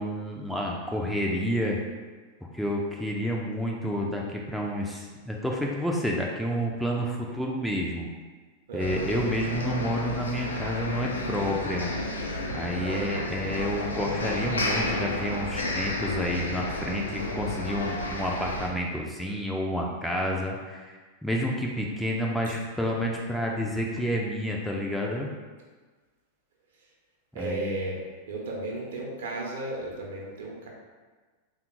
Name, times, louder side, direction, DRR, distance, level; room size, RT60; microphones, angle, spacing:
voice 1, 0.0-1.8 2.5-8.1 8.7-11.9 12.5-25.3 27.3-27.8, equal, ahead, -2 dB, 0.4 m, -29 dB
voice 2, 8.7-9.2 12.8-13.2 27.3-28.0 28.3-30.7, right 2 dB, 60° right, -2 dB, 0.7 m, -34 dB
sound 1, 8.8-18.7, left 1 dB, 75° left, 0.4 m, -32 dB
3.5 x 2.4 x 2.9 m, 1.4 s
figure-of-eight pair, 90°, 0 cm